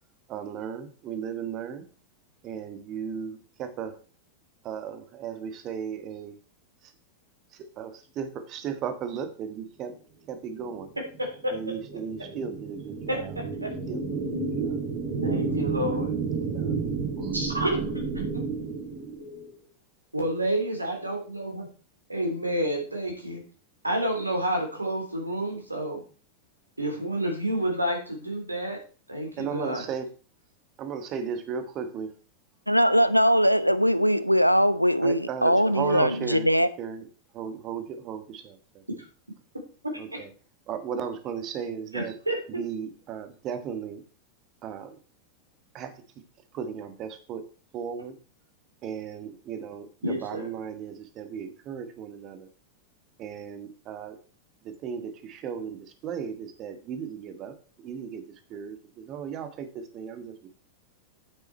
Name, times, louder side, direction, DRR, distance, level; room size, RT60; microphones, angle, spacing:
voice 1, 0.3-1.9 2.4-4.0 4.6-6.3 6.8-6.9 7.5-9.9 10.3-10.9 11.5-13.3 13.9-14.8 15.6-15.8 16.4-17.4 29.4-30.1 30.8-32.1 35.0-36.5 36.8-37.1 37.3-38.8 40.0-40.3 40.7-42.2 42.5-44.0 44.6-45.0 45.7-46.0 46.5-47.5 47.7-48.2 48.8-52.5 53.2-54.2 54.6-60.5, right 7 dB, 35° right, 1.6 m, -36 dB
sound 1, 10.9-19.5, right 4 dB, 55° right, 4.9 m, -31 dB
voice 2, 11.2-11.5 13.1-13.2 13.6-13.7 15.2-16.1 17.3-17.9 18.3-18.4 20.1-21.7 22.1-23.4 23.8-26.0 26.8-28.8 29.1-29.8 41.9-42.6 50.0-50.5, right 1 dB, 85° right, 3.3 m, -29 dB
voice 3, 32.7-36.7, equal, 90° left, 0.7 m, -21 dB
9.4 x 8.0 x 4.4 m
figure-of-eight pair, 90°, 0 cm